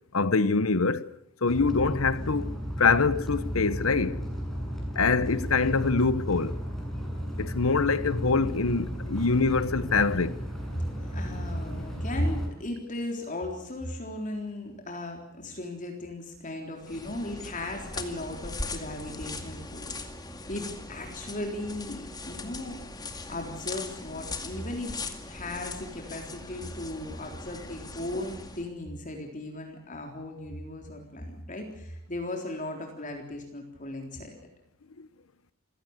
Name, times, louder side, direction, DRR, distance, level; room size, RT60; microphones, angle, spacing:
voice 1, 0.1-1.0 1.4-4.2 4.9-6.6 7.4-10.4 35.0-35.1, left 4 dB, 85° left, 1.0 m, -24 dB
sound 1, 1.5-12.5, equal, ahead, 7.1 m, -34 dB
voice 2, 10.7-20.0 20.5-22.8 23.3-25.0 25.3-34.3, left 1 dB, 40° left, 3.8 m, -36 dB
sound 2, 16.8-28.7, left 2 dB, 20° left, 2.2 m, -40 dB
28.0 x 16.5 x 8.1 m
head